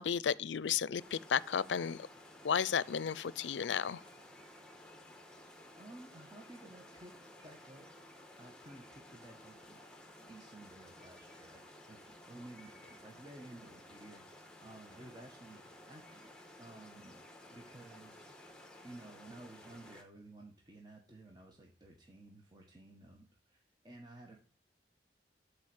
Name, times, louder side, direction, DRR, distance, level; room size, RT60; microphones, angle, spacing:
voice 1, 0.0-2.1 2.4-4.0, left 7 dB, 90° left, 0.5 m, -33 dB
sound 1, 1.0-20.0, left 1 dB, 5° left, 1.6 m, -55 dB
voice 2, 5.8-7.1 7.4-7.9 8.4-9.9 10.2-16.3 16.6-17.2 17.5-18.4 18.8-24.4, right 1 dB, 25° right, 1.6 m, -54 dB
12.0 x 5.0 x 8.0 m
head